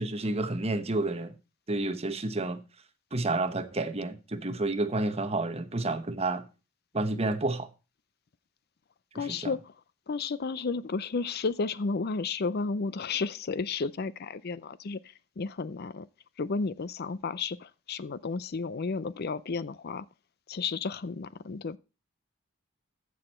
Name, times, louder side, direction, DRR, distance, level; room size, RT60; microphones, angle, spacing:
voice 1, 0.0-1.3 1.7-2.6 3.1-6.4 6.9-7.7 9.1-9.5, right 2 dB, 30° right, 1.0 m, -30 dB
voice 2, 9.1-9.6 10.1-15.0 15.4-16.1 16.4-20.1 20.5-21.8, left 4 dB, 50° left, 0.5 m, -32 dB
14.5 x 6.3 x 4.3 m
head